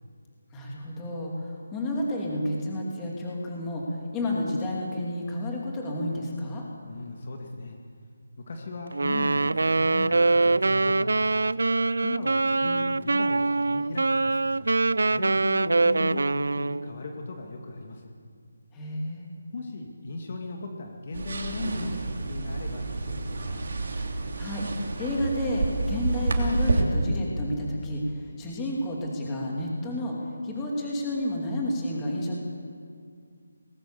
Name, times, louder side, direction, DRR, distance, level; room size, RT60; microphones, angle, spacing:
voice 1, 0.5-6.6 18.7-19.3 24.4-24.6 25.0-28.0 28.4-30.2 30.4-32.4, left 1 dB, 10° left, -2 dB, 2.7 m, -30 dB
voice 2, 6.9-7.8 8.5-14.7 15.1-18.0 19.5-23.6, left 3 dB, 40° left, 2 dB, 2.1 m, -38 dB
Wind instrument woodwind instrument, 8.9-16.9, right 3 dB, 75° right, 0.4 m, -24 dB
sound 1, 21.1-26.8, right 3 dB, 55° right, 3.2 m, -29 dB
20.0 x 19.0 x 7.0 m, 2.2 s
figure-of-eight pair, 170°, 0 cm